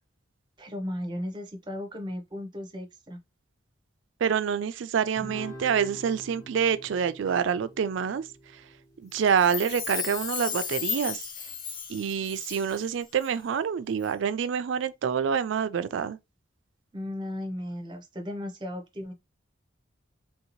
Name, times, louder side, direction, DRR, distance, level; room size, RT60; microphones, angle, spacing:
voice 1, 0.6-3.2 16.9-19.1, left 1 dB, 20° right, 0.6 m, -35 dB
voice 2, 4.2-8.2 9.0-11.2 11.9-16.2, right 7 dB, 70° right, 0.3 m, -27 dB
Guitar, 5.1-9.8, equal, 15° left, 1.2 m, -46 dB
Chime, 9.3-12.9 13.2-13.3, left 7 dB, 40° left, 0.5 m, -35 dB
3.2 x 2.7 x 2.9 m
head